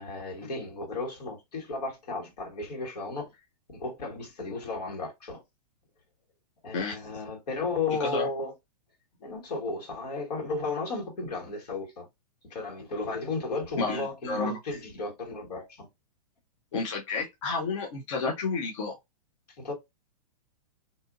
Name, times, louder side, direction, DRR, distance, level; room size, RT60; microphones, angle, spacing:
voice 1, 0.0-3.3 3.7-5.4 6.6-8.5 9.2-12.1 12.4-15.9 19.6-19.7, left 3 dB, 85° left, 1.7 m, -34 dB
voice 2, 13.8-14.6 16.7-19.0, left 4 dB, 50° left, 0.7 m, -31 dB
2.7 x 2.5 x 2.5 m
supercardioid pair, 175°, 20 cm